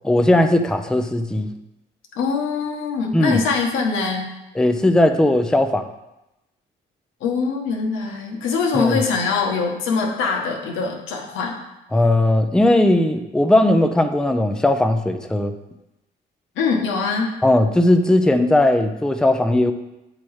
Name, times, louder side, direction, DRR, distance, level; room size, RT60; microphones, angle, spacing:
voice 1, 0.0-1.5 3.1-3.4 4.6-5.9 8.7-9.0 11.9-15.5 17.4-19.7, left 1 dB, 5° left, 7 dB, 0.4 m, -18 dB
voice 2, 2.2-4.3 7.2-11.6 16.6-17.4, left 5 dB, 90° left, 1 dB, 1.1 m, -23 dB
8.3 x 3.0 x 4.7 m, 0.93 s
cardioid pair, 90°, 20 cm